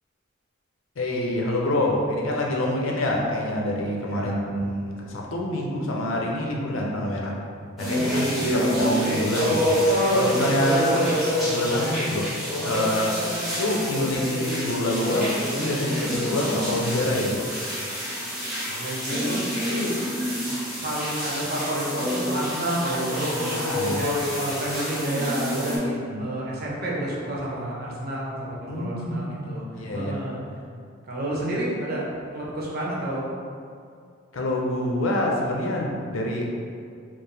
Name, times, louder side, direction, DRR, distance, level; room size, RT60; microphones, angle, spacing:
voice 1, 1.0-7.4 7.8-10.8 11.4-12.4 12.6-13.3 13.6-17.5 23.5-24.2 25.9-26.3 28.7-30.3 34.3-36.6, left 1 dB, 85° left, -2 dB, 0.6 m, -26 dB
voice 2, 4.1-4.4 8.1-8.5 10.6-11.1 18.7-20.0 20.8-29.6 29.9-30.4 31.1-32.0 32.3-33.3, right 1 dB, 50° right, -5 dB, 0.8 m, -29 dB
sound 1, 7.8-25.8, equal, ahead, 1.3 m, -27 dB
4.6 x 2.0 x 3.3 m, 2.3 s
head